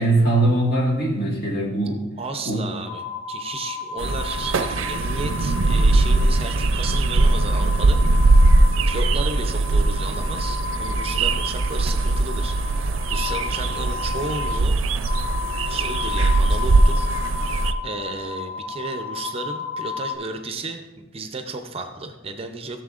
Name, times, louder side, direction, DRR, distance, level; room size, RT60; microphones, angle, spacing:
voice 1, 0.0-2.0 2.4-2.6, right 2 dB, 50° left, -2 dB, 1.7 m, -21 dB
voice 2, 2.2-14.8 15.7-17.1 17.4-22.8, right 3 dB, 30° right, 6 dB, 0.5 m, -34 dB
sound 1, 2.8-20.1, left 5 dB, 85° left, 2.5 m, -33 dB
sound 2, 4.0-17.7, right 2 dB, 80° right, 0.5 m, -20 dB
15.0 x 7.0 x 2.4 m, 1.1 s
head